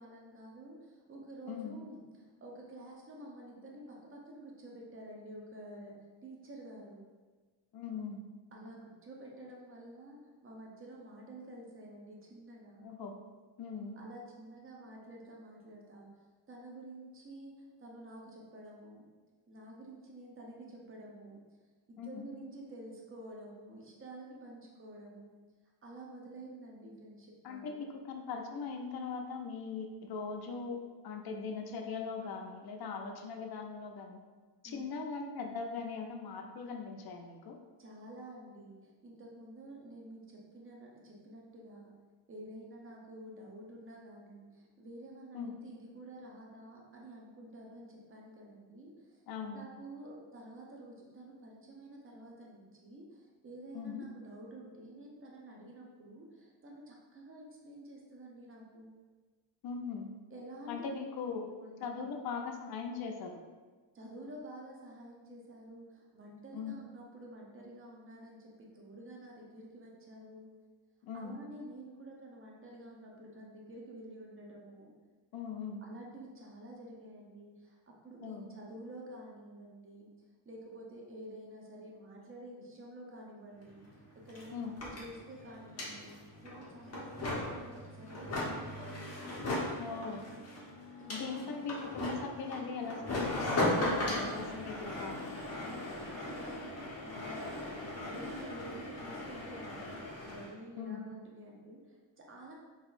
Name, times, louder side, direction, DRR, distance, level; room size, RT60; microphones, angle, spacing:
voice 1, 0.0-7.0 8.5-12.9 14.0-19.1 19.5-21.4 21.9-25.4 25.8-27.9 34.6-34.8 37.8-41.9 42.3-49.2 49.5-58.9 60.3-61.1 61.6-62.0 63.9-70.5 71.1-74.9 75.8-80.1 80.4-89.0 91.0-91.6 95.6-102.5, right 1 dB, 25° right, -2 dB, 0.7 m, -50 dB
voice 2, 1.5-1.8 7.7-8.2 12.8-13.2 13.6-14.0 22.0-22.3 27.4-34.2 34.6-37.6 45.3-45.6 49.3-49.7 53.7-54.0 59.6-60.1 60.7-61.5 61.8-63.4 66.5-66.7 71.0-71.4 75.3-75.9 78.2-78.5 84.5-84.8 89.8-90.3 91.1-95.3 100.8-101.1, left 5 dB, 50° left, 3 dB, 0.6 m, -40 dB
sound 1, 83.6-83.7 83.9-100.5, left 1 dB, 30° left, 0.9 m, -38 dB
4.0 x 2.8 x 2.5 m, 1.4 s
cardioid pair, 110°, 47 cm